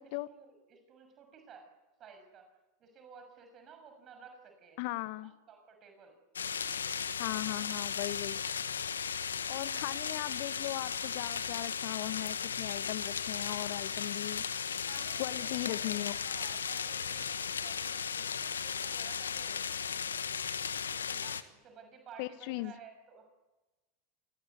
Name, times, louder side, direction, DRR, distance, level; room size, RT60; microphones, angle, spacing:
voice 1, 0.3-1.7 2.0-2.5 2.8-4.8 5.2-6.2 6.5-7.0 9.7-10.1 14.9-20.4 20.9-23.2, right 6 dB, 40° right, 6.6 m, -55 dB
voice 2, 4.8-5.3 7.2-8.4 9.5-14.4 15.2-16.2 22.2-22.7, left 19 dB, 55° left, 1.2 m, -38 dB
sound 1, 6.4-21.4, left 7 dB, 80° left, 1.4 m, -36 dB
27.5 x 20.0 x 9.6 m
figure-of-eight pair, 80°, 0 cm